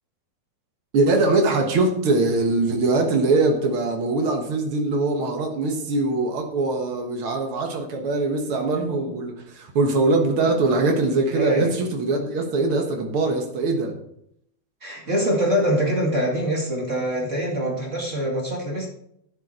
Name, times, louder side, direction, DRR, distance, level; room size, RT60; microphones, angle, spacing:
voice 1, 0.9-13.9, right 3 dB, 85° right, 1.2 m, -22 dB
voice 2, 11.3-11.7 14.8-18.9, equal, 30° right, 1.3 m, -24 dB
12.0 x 8.0 x 4.3 m
omnidirectional pair, 4.6 m